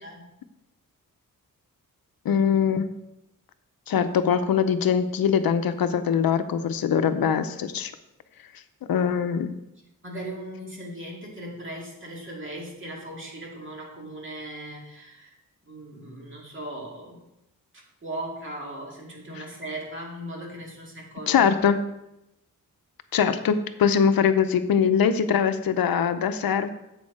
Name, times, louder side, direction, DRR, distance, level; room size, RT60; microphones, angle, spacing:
voice 1, 2.2-2.9 3.9-7.9 8.9-9.5 21.3-21.8 23.1-26.7, left 7 dB, 85° left, 10 dB, 0.7 m, -22 dB
voice 2, 10.0-15.4 15.7-17.2 18.0-21.4, right 1 dB, 35° right, -2 dB, 2.2 m, -38 dB
8.0 x 6.3 x 4.8 m, 0.87 s
wide cardioid pair, 155°, 35 cm